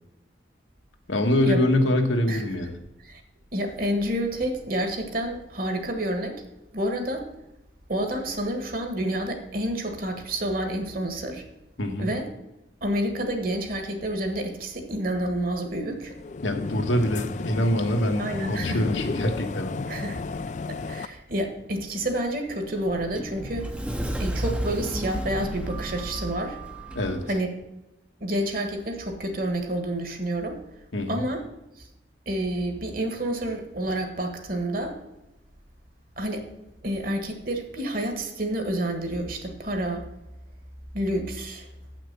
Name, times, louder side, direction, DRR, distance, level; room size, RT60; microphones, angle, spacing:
voice 1, 1.1-2.8 11.8-12.1 16.4-19.9 26.9-27.2 30.9-31.2, left 1 dB, 80° left, 3 dB, 1.4 m, -24 dB
voice 2, 3.5-6.4 6.7-7.2 7.9-11.4 12.0-12.3 12.8-16.1 18.2-18.8 19.9-20.2 20.7-23.7 24.2-26.6 27.3-27.5 28.2-30.6 31.1-31.4 31.8-31.9 32.2-34.9 36.2-36.5 36.8-40.0 40.9-41.7, right 1 dB, 50° right, 5 dB, 1.5 m, -29 dB
sound 1, 16.0-21.1, left 4 dB, 40° left, 0.3 m, -33 dB
Sliding door, 22.5-27.3, right 1 dB, 5° right, 0.6 m, -32 dB
8.0 x 6.1 x 6.7 m, 0.92 s
head